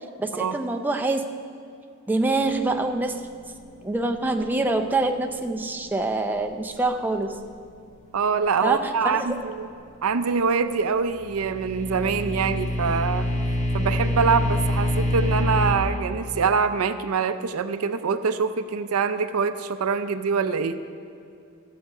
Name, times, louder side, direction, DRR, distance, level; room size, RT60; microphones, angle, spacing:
voice 1, 0.2-1.2 2.1-3.3 3.8-7.4 8.6-9.4, right 2 dB, 10° right, 3 dB, 0.4 m, -25 dB
voice 2, 8.1-9.7 10.0-13.3 13.7-20.8, right 5 dB, 75° right, 10 dB, 0.5 m, -24 dB
sound 1, 11.2-15.8, left 1 dB, 35° left, 1.2 m, -25 dB
14.5 x 7.4 x 4.9 m, 2.4 s
head